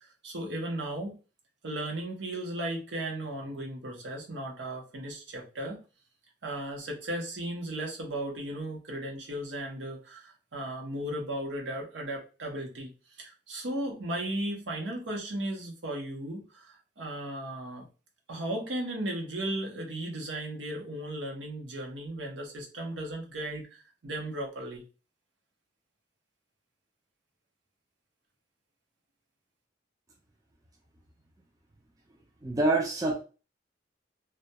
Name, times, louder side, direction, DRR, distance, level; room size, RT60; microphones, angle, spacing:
voice 1, 0.2-1.2 1.6-5.8 6.4-12.9 13.2-17.9 18.3-24.8, right 1 dB, 75° right, 0 dB, 0.7 m, -36 dB
voice 2, 32.4-33.2, right 2 dB, 20° right, 0 dB, 0.3 m, -26 dB
2.2 x 2.2 x 2.7 m, 0.34 s
head